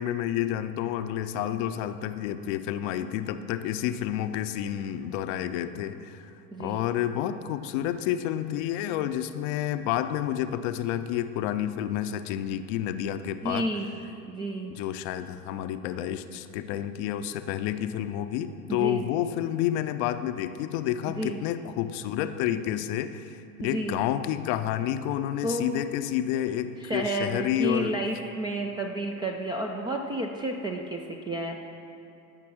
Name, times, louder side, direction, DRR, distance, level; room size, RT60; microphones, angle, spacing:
voice 1, 0.0-6.3 6.6-13.7 14.7-27.9, left 11 dB, 45° left, 11 dB, 0.6 m, -30 dB
voice 2, 6.5-6.9 13.4-13.9 14.3-14.7 18.7-19.1 21.1-21.4 23.6-23.9 25.4-25.8 26.8-31.6, right 1 dB, 10° right, 2 dB, 0.3 m, -31 dB
12.5 x 6.0 x 6.2 m, 2.9 s
figure-of-eight pair, 75°, 48 cm